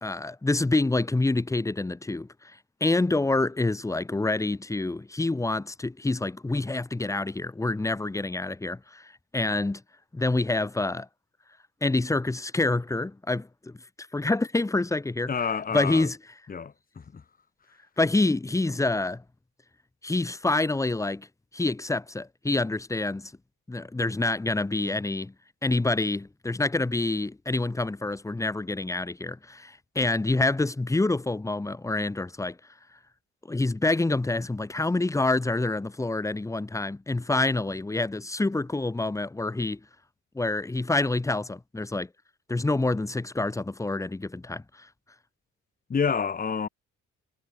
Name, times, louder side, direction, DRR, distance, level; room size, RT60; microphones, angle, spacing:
voice 1, 0.0-2.3 2.8-9.8 10.1-11.1 11.8-13.8 14.1-15.3 15.7-16.2 18.0-19.2 20.0-21.3 21.5-23.3 23.7-25.3 25.6-32.6 33.5-39.8 40.3-42.1 42.5-44.9, left 2 dB, 10° left, 0.8 m, -27 dB
voice 2, 15.3-16.1 16.5-17.2 45.9-46.7, left 6 dB, 30° left, 1.2 m, -28 dB
cardioid pair, 90°, 30 cm